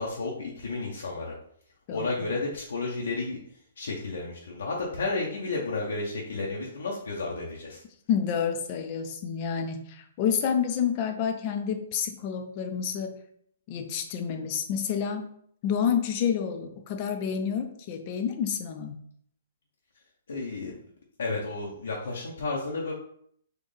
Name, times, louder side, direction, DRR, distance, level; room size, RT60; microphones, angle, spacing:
voice 1, 0.0-1.3 1.9-3.4 3.8-7.8 20.3-20.7 21.2-22.9, left 3 dB, 75° left, -2 dB, 0.7 m, -32 dB
voice 2, 1.9-2.3 8.1-13.2 13.7-15.3 15.6-19.0, left 7 dB, 40° left, 6 dB, 0.6 m, -29 dB
4.3 x 2.3 x 3.3 m, 0.65 s
hypercardioid pair, 135°, 0 cm